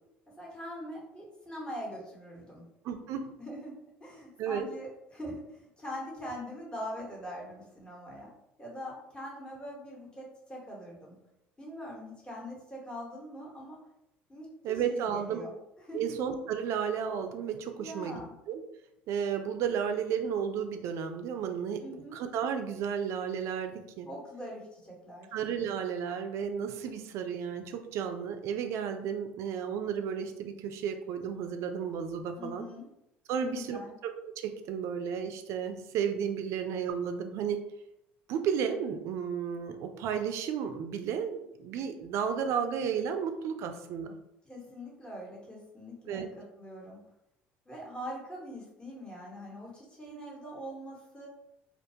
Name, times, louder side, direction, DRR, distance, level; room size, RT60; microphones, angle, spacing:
voice 1, 0.3-2.6 3.4-3.7 4.0-8.3 8.6-11.2 11.6-13.8 14.3-16.1 17.8-18.3 21.8-22.2 24.0-25.3 32.4-32.9 33.3-33.9 44.4-47.0 47.6-51.3, equal, 15° left, -4 dB, 1.0 m, -43 dB
voice 2, 2.8-3.3 4.4-4.7 14.6-15.4 15.9-18.2 18.5-18.6 19.1-21.8 22.1-24.1 25.3-32.7 33.3-33.8 34.4-37.6 38.3-44.2 46.1-46.3, right 7 dB, 65° right, 7 dB, 0.3 m, -33 dB
2.3 x 2.2 x 2.7 m, 0.85 s
supercardioid pair, 80°, 5 cm